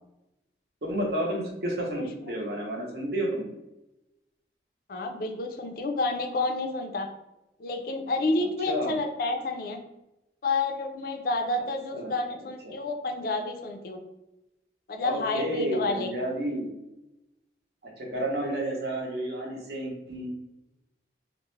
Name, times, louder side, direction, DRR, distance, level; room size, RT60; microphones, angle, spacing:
voice 1, 0.8-3.5 8.7-8.9 11.9-12.1 12.6-12.8 15.0-16.7 18.0-20.3, right 1 dB, 60° right, -1 dB, 0.7 m, -31 dB
voice 2, 2.0-2.4 4.9-7.1 7.6-9.8 10.4-14.0 14.9-16.1, left 2 dB, 55° left, 4 dB, 0.3 m, -30 dB
2.4 x 2.0 x 3.0 m, 0.95 s
head